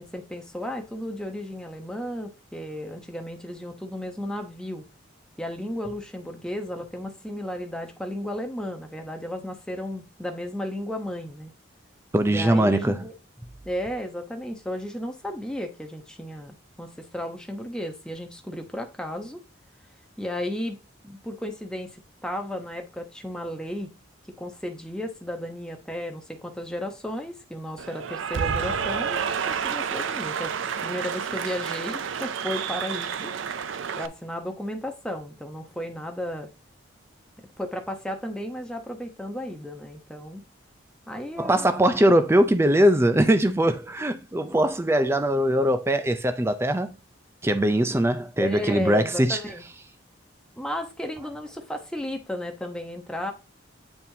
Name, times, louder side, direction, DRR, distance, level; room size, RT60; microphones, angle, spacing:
voice 1, 0.0-4.8 5.4-11.5 12.3-13.1 13.6-19.4 20.2-20.8 21.0-23.9 24.4-30.5 30.8-33.3 33.9-36.5 37.6-40.4 41.1-41.7 48.4-49.6 50.6-53.3, left 1 dB, 5° left, 0.8 m, -34 dB
voice 2, 12.1-13.0 41.4-46.9 47.4-49.4, right 1 dB, 15° right, 0.4 m, -21 dB
Cheering / Applause, 27.8-34.1, right 7 dB, 75° right, 0.5 m, -29 dB
8.8 x 4.1 x 2.7 m
head